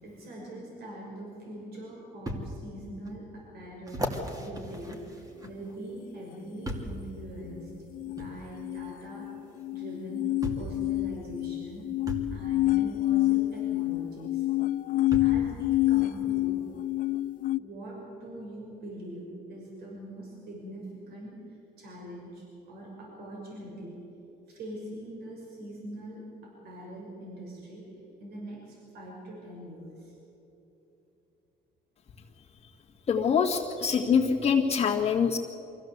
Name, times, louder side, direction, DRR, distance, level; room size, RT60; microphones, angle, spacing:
voice 1, 0.0-4.1 4.4-9.4 9.7-10.2 10.5-11.9 12.3-14.5 15.2-16.6 17.6-24.0 24.5-27.8 28.2-30.2, right 1 dB, 65° right, -2 dB, 6.0 m, -43 dB
sound 1, 1.1-1.2 2.3-2.4 3.1-3.2 3.9-5.8 6.6-7.0 8.2-8.3 9.6-9.7 10.4-10.8 12.1-12.3 13.9-14.0 15.1-15.4 16.2-16.3, equal, 20° right, 2.6 m, -36 dB
sound 2, 7.9-17.6, left 16 dB, 55° left, 0.4 m, -28 dB
voice 2, 33.1-35.4, left 6 dB, 40° left, -5 dB, 1.9 m, -24 dB
23.5 x 16.0 x 8.0 m, 3.0 s
cardioid pair, 110°, 17 cm